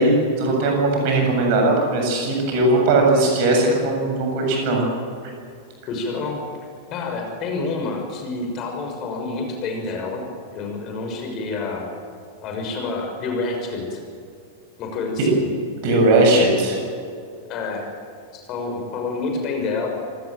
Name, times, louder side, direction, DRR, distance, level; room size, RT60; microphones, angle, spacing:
voice 1, 0.0-4.8 15.2-15.3 15.8-16.8, right 2 dB, 45° right, 1 dB, 7.6 m, -18 dB
voice 2, 5.9-6.4 6.9-10.2 10.5-11.9 12.4-14.0 14.8-15.4 17.5-17.9 18.3-19.9, left 3 dB, 35° left, 2 dB, 6.2 m, -28 dB
26.5 x 18.5 x 7.7 m, 2.4 s
figure-of-eight pair, 90°, 0 cm